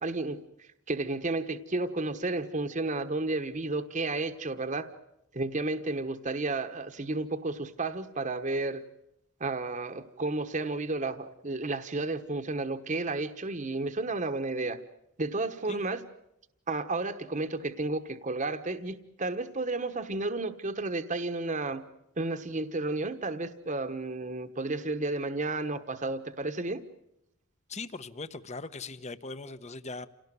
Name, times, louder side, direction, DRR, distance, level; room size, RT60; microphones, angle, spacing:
voice 1, 0.0-4.9 5.3-8.8 9.4-14.8 15.2-16.0 16.7-21.8 22.2-26.8, right 2 dB, 35° right, 8 dB, 1.2 m, -32 dB
voice 2, 27.7-30.1, left 3 dB, 35° left, 13 dB, 1.0 m, -40 dB
28.5 x 18.0 x 9.2 m, 0.83 s
head